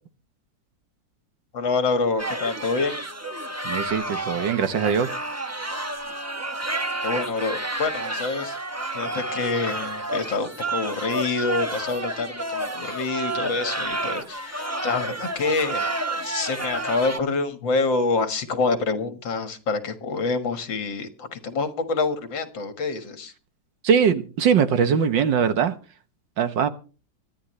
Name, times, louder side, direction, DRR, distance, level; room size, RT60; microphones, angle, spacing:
voice 1, 1.5-2.9 7.0-8.6 8.9-15.8 16.2-23.3, left 3 dB, 70° left, 9 dB, 2.4 m, -26 dB
sound 1, 2.2-17.2, right 2 dB, 15° right, 0.6 m, -30 dB
voice 2, 3.6-5.1 23.8-25.7 26.4-26.7, right 7 dB, 70° right, 11 dB, 1.8 m, -21 dB
24.5 x 10.0 x 3.2 m, 0.37 s
omnidirectional pair, 2.1 m